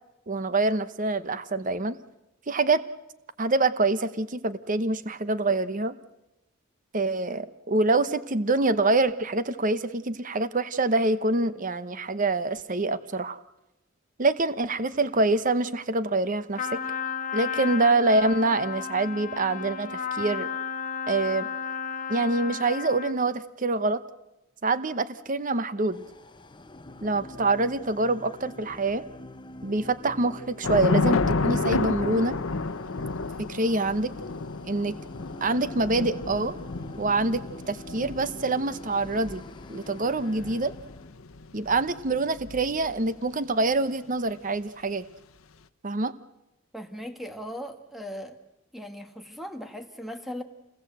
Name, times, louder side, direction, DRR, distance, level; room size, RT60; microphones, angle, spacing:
voice 1, 0.3-2.0 2.5-2.8 3.4-6.0 6.9-13.4 14.2-16.8 17.3-20.5 21.1-21.5 22.1-24.0 24.6-26.0 27.0-29.0 29.6-32.4 33.4-34.1 34.7-35.0 35.4-36.5 37.0-39.4 39.7-40.7 41.5-45.0 45.8-46.1, right 2 dB, 40° right, 13 dB, 0.9 m, -25 dB
Trumpet, 16.6-23.3, left 6 dB, 40° left, 1.4 m, -33 dB
sound 1, 25.9-41.1, left 2 dB, 25° left, 0.8 m, -45 dB
Thunder / Rain, 30.6-43.1, left 3 dB, 90° left, 0.9 m, -31 dB
voice 2, 46.7-48.4 48.7-50.4, equal, ahead, 6 dB, 1.8 m, -38 dB
27.5 x 20.5 x 8.0 m, 0.95 s
head